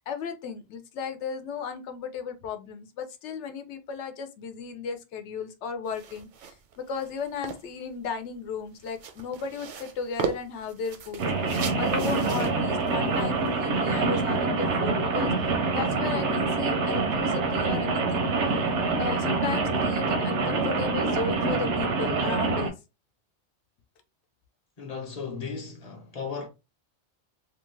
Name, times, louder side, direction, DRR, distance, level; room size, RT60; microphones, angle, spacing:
voice 1, 0.1-15.3 15.7-18.3 19.0-22.7, left 5 dB, 85° left, 0.9 m, -35 dB
sound 1, 5.9-14.4, right 7 dB, 60° right, 0.5 m, -39 dB
Rain, 11.2-22.7, right 3 dB, 85° right, 0.9 m, -26 dB
voice 2, 24.8-26.5, left 5 dB, 40° left, 0.7 m, -36 dB
2.8 x 2.2 x 3.1 m
omnidirectional pair, 1.2 m